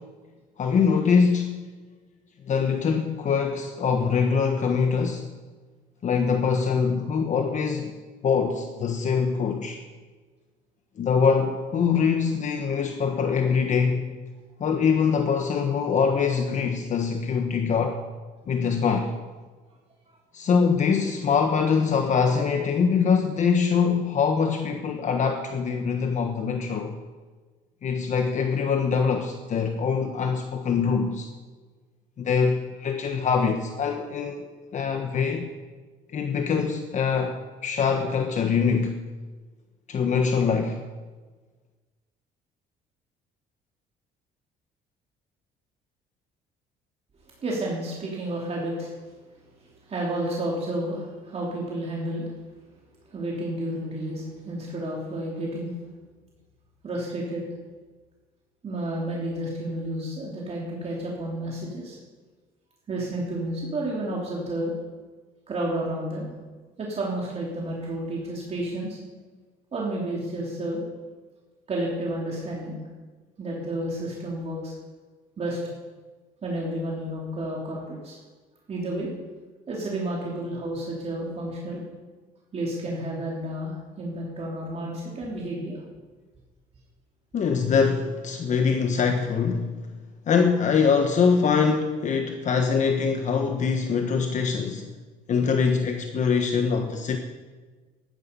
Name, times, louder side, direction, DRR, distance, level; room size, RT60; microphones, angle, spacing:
voice 1, 0.6-1.6 2.5-5.3 6.0-7.9 8.2-9.8 11.0-14.1 14.6-18.0 18.5-19.1 20.3-27.0 27.8-31.3 32.2-34.5 34.7-35.5 36.1-39.0 39.9-40.8 87.3-89.7 90.3-94.9 95.3-97.2, left 5 dB, 45° left, 5 dB, 1.3 m, -23 dB
voice 2, 47.4-48.9 49.9-52.2 53.1-55.7 56.8-57.4 58.6-62.0 62.9-64.7 65.5-66.3 66.8-69.0 69.7-70.8 71.7-72.8 73.4-74.7 75.4-75.6 76.4-78.2 78.7-79.1 79.7-81.8 82.5-85.8, right 1 dB, 40° right, -4 dB, 3.6 m, -31 dB
15.0 x 12.5 x 5.6 m, 1.3 s
cardioid pair, 110°, 17 cm